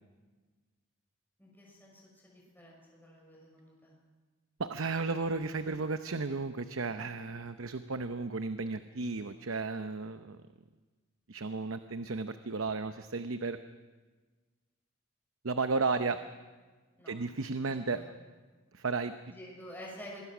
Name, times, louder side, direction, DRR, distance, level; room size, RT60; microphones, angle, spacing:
voice 1, 1.4-3.9 15.8-15.9 17.0-17.2 17.6-18.0 19.3-20.2, equal, 10° left, -3 dB, 6.0 m, -50 dB
voice 2, 4.6-10.4 11.3-13.6 15.4-16.2 17.1-18.0 18.7-19.1, right 4 dB, 70° right, 10 dB, 0.8 m, -34 dB
26.0 x 21.0 x 6.1 m, 1.3 s
head